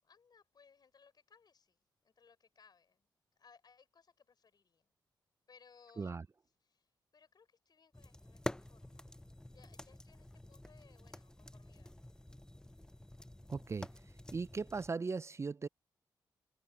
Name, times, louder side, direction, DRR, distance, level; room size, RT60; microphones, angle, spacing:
voice 1, 0.0-1.8 2.0-3.1 3.4-4.9 5.5-6.2 6.6-6.9 7.1-9.1 9.4-12.0, left 5 dB, 55° left, 5.8 m, -65 dB
sound 1, 7.9-14.9, left 1 dB, 10° left, 0.7 m, -48 dB
voice 2, 13.5-13.9 14.3-15.7, right 4 dB, 35° right, 0.4 m, -38 dB
open air
supercardioid pair, 50°, 8 cm